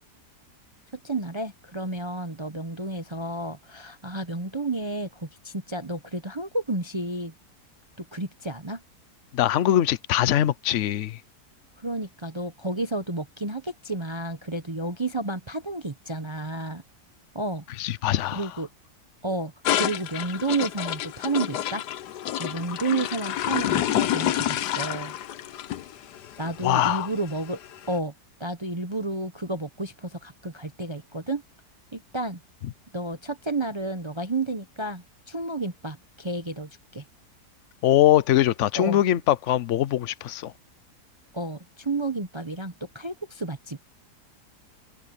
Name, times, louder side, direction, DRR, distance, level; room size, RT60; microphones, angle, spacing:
voice 1, 0.9-7.3 8.0-8.8 11.8-16.8 17.3-17.6 18.3-18.7 19.2-21.8 22.4-25.2 26.4-27.6 27.9-28.1 28.4-31.4 31.9-32.4 32.9-37.0 38.7-39.0 41.3-43.8, right 2 dB, 20° right, 0.8 m, -31 dB
voice 2, 9.3-11.2 17.8-18.5 26.6-27.1 37.8-40.5, left 12 dB, 60° left, 0.9 m, -22 dB
sound 1, 19.6-27.9, left 12 dB, 80° left, 1.4 m, -29 dB
open air
omnidirectional pair, 1.8 m